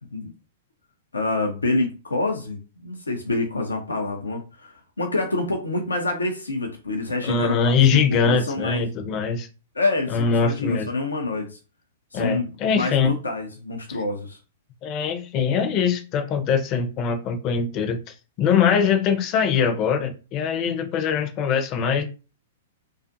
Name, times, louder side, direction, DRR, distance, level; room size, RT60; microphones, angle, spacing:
voice 1, 1.1-7.7 8.1-8.8 9.8-11.6 12.1-14.4, left 2 dB, 85° left, 0.5 m, -27 dB
voice 2, 7.2-9.5 10.1-10.9 12.1-13.2 14.8-18.0 18.4-22.0, left 6 dB, 35° left, 0.5 m, -22 dB
2.4 x 2.4 x 2.6 m
figure-of-eight pair, 110°, 0 cm